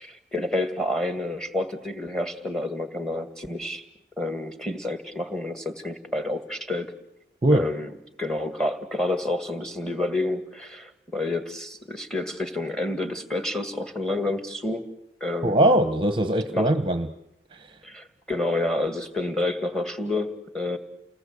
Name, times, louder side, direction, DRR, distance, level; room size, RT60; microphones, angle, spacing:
voice 1, 0.0-3.8 4.2-6.9 7.5-7.9 8.2-14.8 15.2-15.7 16.5-16.7 17.8-20.8, left 2 dB, 5° left, 9 dB, 1.9 m, -29 dB
voice 2, 15.4-17.1 17.5-17.8, right 1 dB, 30° right, 9 dB, 0.9 m, -21 dB
29.5 x 19.5 x 8.2 m, 0.84 s
head